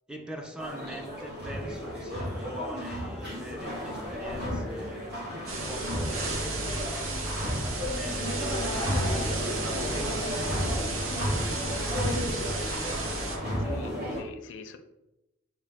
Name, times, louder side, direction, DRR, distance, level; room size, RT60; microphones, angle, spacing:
voice 1, 0.1-5.2 5.5-7.3 7.6-12.8, right 1 dB, 5° right, 0.3 m, -44 dB
sound 1, 0.6-14.2, equal, 55° right, 1.4 m, -33 dB
sound 2, 5.5-13.4, right 2 dB, 85° right, 0.8 m, -33 dB
voice 2, 13.6-14.8, left 4 dB, 60° left, 0.5 m, -44 dB
6.4 x 2.2 x 3.4 m
head